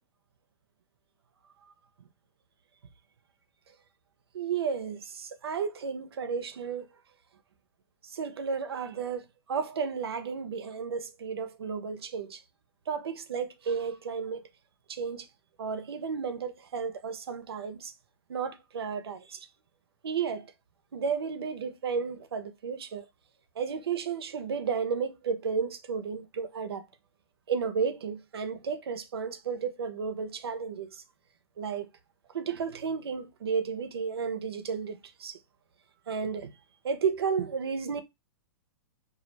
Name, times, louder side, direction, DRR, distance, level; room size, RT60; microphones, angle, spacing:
voice 1, 4.3-6.9 8.0-12.4 12.9-14.5 14.9-15.3 15.6-17.9 18.3-19.5 20.0-20.5 20.9-23.0 23.6-26.9 27.5-31.0 31.6-31.9 32.3-35.4 36.1-36.5 36.8-38.0, right 6 dB, 85° right, 0.5 m, -33 dB
2.3 x 2.0 x 3.1 m
hypercardioid pair, 125°, 13 cm